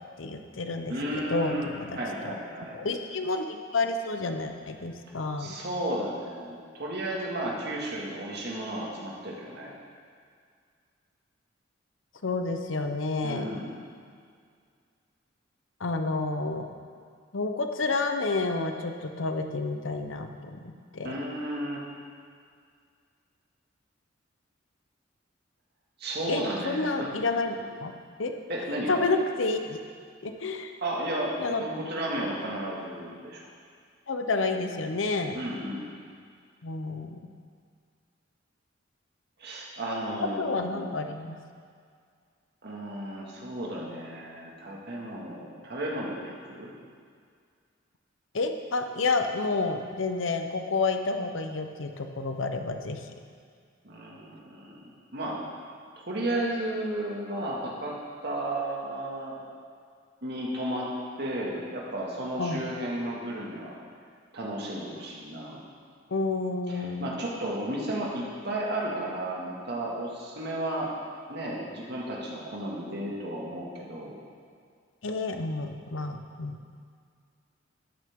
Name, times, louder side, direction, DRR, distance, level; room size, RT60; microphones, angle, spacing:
voice 1, 0.2-2.0 2.7-5.6 12.2-13.5 15.8-16.7 17.3-21.1 26.3-27.9 28.2-28.3 28.9-29.8 30.2-30.7 31.4-31.6 34.1-35.4 36.6-37.3 40.2-41.4 48.3-53.1 62.4-62.6 66.1-67.2 75.0-76.6, left 3 dB, 80° left, 6 dB, 0.8 m, -30 dB
voice 2, 0.9-1.7 2.0-2.8 5.4-9.7 13.2-13.7 21.0-21.8 26.0-27.1 27.6-27.7 28.5-29.0 30.8-33.5 35.3-35.9 39.4-40.9 42.6-46.7 53.8-55.4 56.0-57.9 58.2-59.4 60.2-60.9 61.2-63.8 64.3-65.6 66.7-71.0 71.3-74.2, right 1 dB, 60° right, -3 dB, 2.0 m, -33 dB
13.0 x 9.3 x 3.7 m, 2.1 s
head